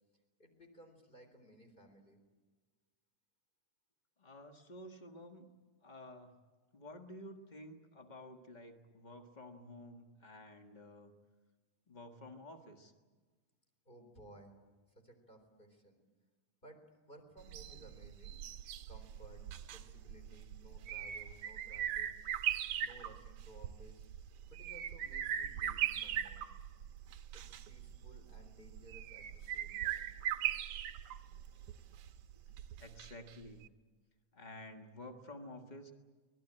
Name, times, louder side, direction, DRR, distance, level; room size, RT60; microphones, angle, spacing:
voice 1, 0.4-2.2 13.9-14.5 14.9-16.0 16.6-16.8 17.1-18.4 18.9-19.4 19.7-22.1 22.8-24.1 24.5-26.5 27.3-30.1, right 1 dB, 15° left, 5 dB, 3.7 m, -58 dB
voice 2, 4.2-5.5 5.8-6.3 6.7-11.1 11.9-12.9 32.8-33.6 34.3-35.9, left 1 dB, 75° left, 4 dB, 0.4 m, -51 dB
sound 1, 17.4-33.3 33.6-33.7, right 10 dB, 70° right, 1.6 m, -40 dB
24.0 x 19.5 x 8.8 m, 1.4 s
omnidirectional pair, 3.5 m